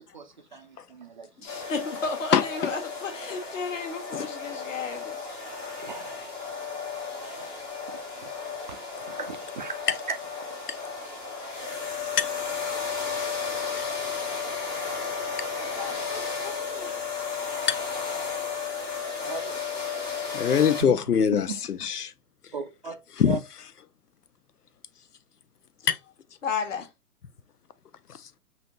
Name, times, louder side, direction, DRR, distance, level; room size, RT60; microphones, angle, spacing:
voice 1, 0.0-1.5 5.8-6.3 7.3-7.5 7.9-9.8 10.1-10.2 19.2-19.5 20.8-20.9 21.5-21.6 22.5-23.0 23.2-23.4, right 5 dB, 35° right, 0.5 m, -38 dB
voice 2, 1.4-5.2 15.8-16.9 26.4-26.9, left 4 dB, 55° left, 1.4 m, -33 dB
sound 1, 1.5-20.8, left 5 dB, 10° left, 0.7 m, -33 dB
voice 3, 20.3-22.1 23.2-23.4 25.8-26.0, left 7 dB, 85° left, 0.5 m, -23 dB
6.1 x 2.7 x 3.0 m
figure-of-eight pair, 120°, 45 cm